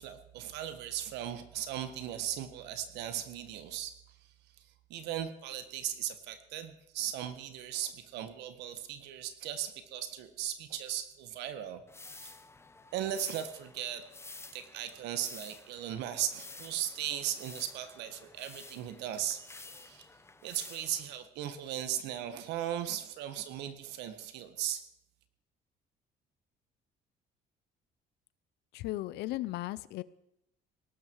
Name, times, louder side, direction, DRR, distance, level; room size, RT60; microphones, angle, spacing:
voice 1, 0.0-12.3 12.9-14.1 14.5-20.1 20.4-24.8, right 11 dB, 90° right, 11 dB, 1.7 m, -38 dB
sound 1, 11.9-21.2, left 3 dB, 15° left, 0.9 m, -51 dB
voice 2, 28.7-30.0, left 17 dB, 85° left, 19 dB, 0.7 m, -36 dB
18.5 x 12.0 x 4.7 m, 0.78 s
cardioid pair, 110°, 17 cm